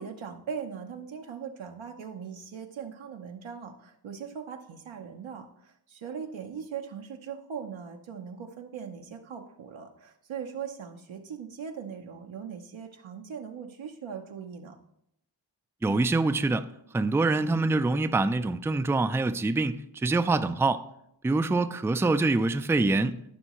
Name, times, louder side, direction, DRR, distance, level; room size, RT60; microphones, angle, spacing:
voice 1, 0.0-14.8, right 7 dB, 80° right, 0.9 m, -40 dB
voice 2, 15.8-16.7 16.9-20.8 21.2-23.2, right 3 dB, 5° right, 0.3 m, -25 dB
Piano, 17.3-18.3, left 5 dB, 35° left, 0.8 m, -44 dB
14.0 x 5.5 x 3.0 m
cardioid pair, 65°, 47 cm